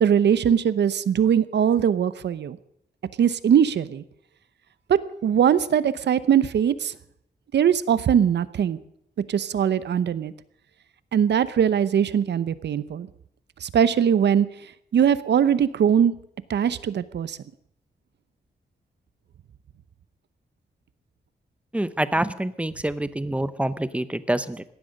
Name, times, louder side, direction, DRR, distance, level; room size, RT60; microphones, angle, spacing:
voice 1, 0.0-2.6 3.2-4.0 4.9-6.9 7.5-8.8 9.3-10.3 11.1-13.1 13.6-14.5 14.9-16.1 16.5-17.4, right 8 dB, 85° right, 16 dB, 0.8 m, -21 dB
voice 2, 21.7-24.6, right 1 dB, 5° right, 15 dB, 0.7 m, -26 dB
17.5 x 12.0 x 6.5 m, 0.73 s
wide cardioid pair, 140°, 18 cm